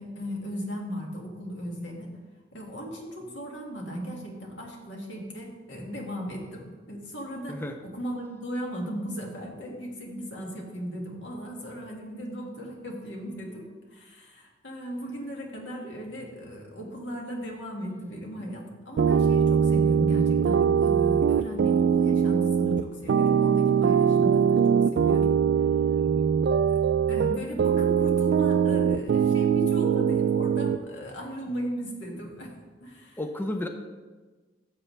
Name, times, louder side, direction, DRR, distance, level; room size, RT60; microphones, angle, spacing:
voice 1, 0.0-2.1 2.5-25.3 26.2-26.3 26.7-26.8 27.1-32.6 32.8-33.2, equal, 85° left, 0 dB, 2.0 m, -37 dB
sound 1, 19.0-30.8, right 7 dB, 65° right, 0.3 m, -22 dB
voice 2, 26.0-26.4 31.5-31.8 33.2-33.7, left 1 dB, 10° left, 6 dB, 0.5 m, -35 dB
13.0 x 7.5 x 3.3 m, 1.3 s
head